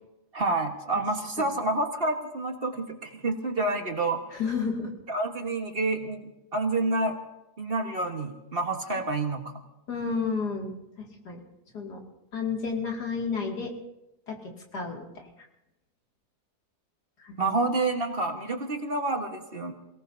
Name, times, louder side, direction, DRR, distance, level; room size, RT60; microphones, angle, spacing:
voice 1, 0.3-4.2 5.1-7.2 7.6-9.5 17.4-19.7, right 2 dB, 35° right, 3 dB, 1.6 m, -28 dB
voice 2, 4.3-4.9 9.9-10.7 11.0-11.4 11.7-12.0 12.3-13.7 14.3-14.4 14.7-15.2 17.2-17.5, left 5 dB, 90° left, 0 dB, 3.0 m, -31 dB
28.5 x 18.0 x 2.8 m, 0.90 s
omnidirectional pair, 1.7 m